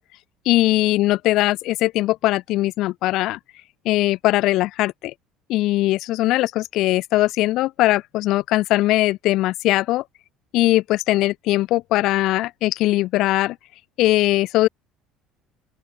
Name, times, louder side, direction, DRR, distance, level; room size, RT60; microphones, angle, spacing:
voice 1, 0.5-3.4 3.9-5.1 5.5-10.0 10.5-13.6 14.0-14.7, left 17 dB, 65° left, 6.9 m, -20 dB
open air
supercardioid pair, 80°, 0 cm